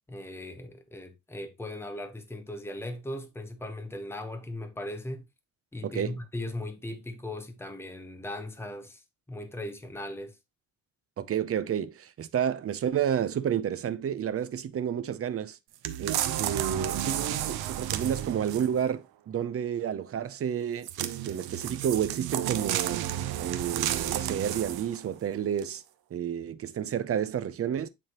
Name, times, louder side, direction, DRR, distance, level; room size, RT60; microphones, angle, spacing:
voice 1, 0.1-5.3 5.7-9.0 9.3-10.3, left 1 dB, 5° left, 1.0 m, -38 dB
voice 2, 5.8-6.2 11.2-15.6 16.0-23.0 23.4-25.8 26.1-27.9, right 9 dB, 40° right, 0.7 m, -30 dB
sound 1, 15.8-18.8 20.8-25.0 25.6-25.7, right 12 dB, 80° right, 0.8 m, -32 dB
8.9 x 3.7 x 3.0 m
cardioid pair, 120°, 37 cm